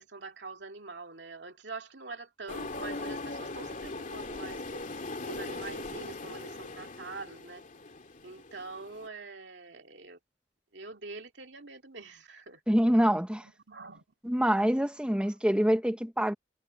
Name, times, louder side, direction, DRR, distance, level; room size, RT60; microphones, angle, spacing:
voice 1, 0.0-4.8 5.3-7.6 8.2-10.2 10.7-12.6 13.7-14.0, right 3 dB, 75° right, 2.5 m, -44 dB
sound 1, 2.5-9.1, left 2 dB, 45° left, 2.7 m, -40 dB
voice 2, 12.7-13.5 14.2-16.3, equal, 5° right, 1.0 m, -25 dB
head